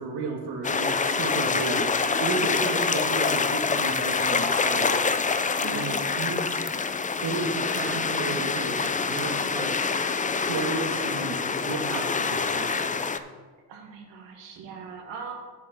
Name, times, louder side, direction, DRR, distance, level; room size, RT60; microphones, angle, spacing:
voice 1, 0.0-1.9 2.2-6.6 7.2-9.8 10.5-13.1, right 4 dB, 65° right, 1 dB, 1.6 m, -33 dB
sound 1, 0.6-13.2, left 5 dB, 20° left, 0.5 m, -26 dB
voice 2, 5.6-6.0 13.7-15.3, right 5 dB, 85° right, 1 dB, 1.8 m, -40 dB
7.4 x 7.4 x 5.8 m, 1.5 s
cardioid pair, 85°, 44 cm